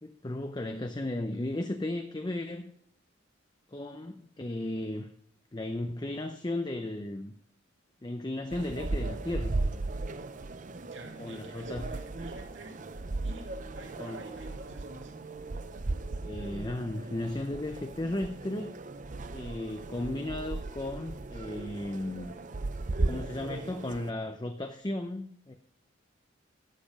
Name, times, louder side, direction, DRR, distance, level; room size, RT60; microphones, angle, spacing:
voice 1, 0.0-2.7 3.7-5.1 5.5-7.3 8.0-9.6 11.2-11.9 14.0-14.2 16.2-18.8 19.3-22.3 23.0-25.5, left 1 dB, 20° left, 0.6 m, -35 dB
sound 1, 8.5-24.1, right 2 dB, 40° right, 0.5 m, -36 dB
voice 2, 10.7-12.8 13.2-15.2 21.5-21.6, right 2 dB, 70° right, 2.3 m, -49 dB
11.5 x 7.6 x 5.1 m
head